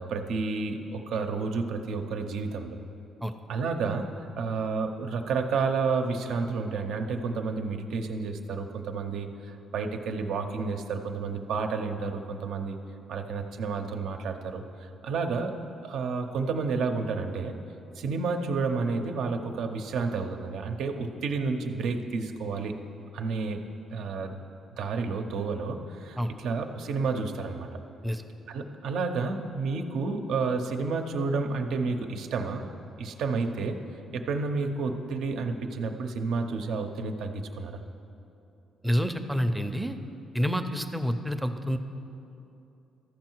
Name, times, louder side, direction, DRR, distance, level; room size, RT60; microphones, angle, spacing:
voice 1, 0.0-2.8 3.5-12.8 13.1-15.6 15.8-17.6 17.9-22.7 23.1-24.4 24.7-27.7 28.5-32.7 33.0-33.8 34.1-37.8, right 4 dB, 80° right, 5 dB, 0.6 m, -30 dB
voice 2, 38.8-40.0 40.3-41.8, equal, 5° right, 8 dB, 0.5 m, -28 dB
14.0 x 5.6 x 4.5 m, 2.8 s
cardioid pair, 90°, 0 cm